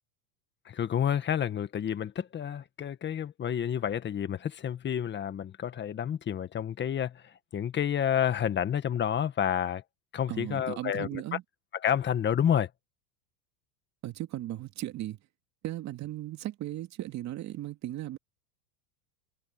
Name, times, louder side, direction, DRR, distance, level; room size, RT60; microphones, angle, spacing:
voice 1, 0.6-7.2 7.5-9.8 10.1-11.4 11.8-12.7, left 9 dB, 25° left, 1.6 m, -29 dB
voice 2, 10.3-11.4 14.0-15.2 15.6-18.2, right 14 dB, 35° right, 2.7 m, -36 dB
supercardioid pair, 135°, 47 cm